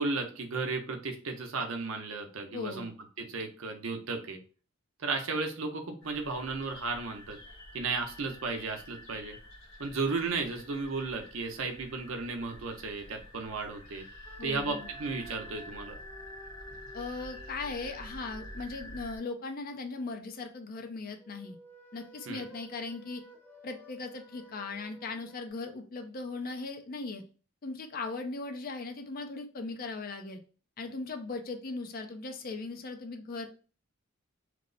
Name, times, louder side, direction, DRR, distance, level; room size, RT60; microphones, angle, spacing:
voice 1, 0.0-4.4 5.0-7.4 7.7-9.4 9.8-14.0 14.4-16.0 22.3-22.4, right 3 dB, 70° right, 4 dB, 0.6 m, -34 dB
voice 2, 2.5-2.9 14.4-14.9 16.9-21.6 21.9-23.2 23.6-27.2 27.6-30.4 30.8-33.5, left 3 dB, 45° left, 5 dB, 0.5 m, -38 dB
sound 1, 6.0-19.2, equal, 90° left, 1.1 m, -48 dB
sound 2, 14.3-19.2 21.2-25.5, right 1 dB, 10° left, 0.7 m, -54 dB
3.0 x 2.0 x 3.8 m, 0.38 s
head